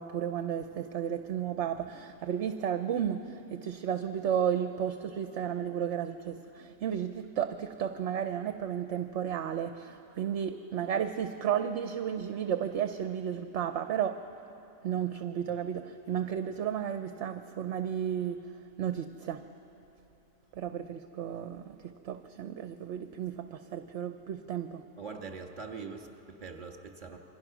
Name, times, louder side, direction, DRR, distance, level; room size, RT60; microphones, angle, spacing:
voice 1, 0.0-14.2 14.8-18.4 18.8-19.4 20.5-24.8, right 9 dB, 65° right, 8 dB, 0.9 m, -33 dB
voice 2, 25.0-27.2, right 5 dB, 35° right, 3 dB, 1.9 m, -43 dB
27.0 x 23.5 x 6.1 m, 3.0 s
omnidirectional pair, 1.4 m